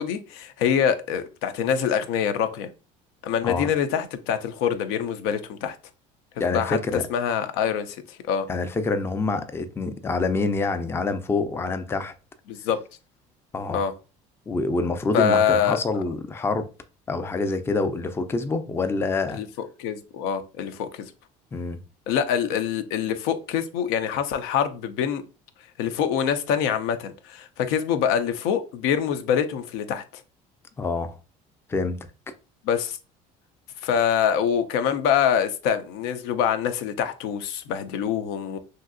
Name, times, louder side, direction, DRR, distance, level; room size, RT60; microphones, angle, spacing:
voice 1, 0.0-2.7 3.2-5.8 6.5-6.8 7.1-8.5 12.5-12.8 13.7-13.9 15.1-16.0 19.3-21.1 22.1-25.2 25.8-30.0 32.6-33.0 33.8-38.6, left 8 dB, 85° left, 0.4 m, -25 dB
voice 2, 6.4-7.0 8.5-12.1 13.5-13.8 14.5-16.7 17.1-19.4 21.5-21.8 30.8-31.2 31.7-32.1, left 3 dB, 15° left, 0.4 m, -26 dB
3.1 x 2.7 x 2.5 m
cardioid pair, 110°, 16 cm